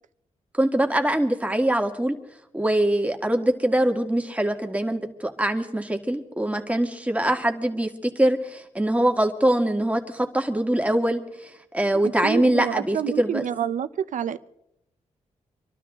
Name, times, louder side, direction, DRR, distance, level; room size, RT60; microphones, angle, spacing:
voice 1, 0.5-2.2 2.5-13.4, right 1 dB, 10° right, 2.0 m, -23 dB
voice 2, 11.9-14.4, right 9 dB, 85° right, 0.8 m, -28 dB
26.0 x 12.5 x 3.7 m
cardioid pair, 85°, 13 cm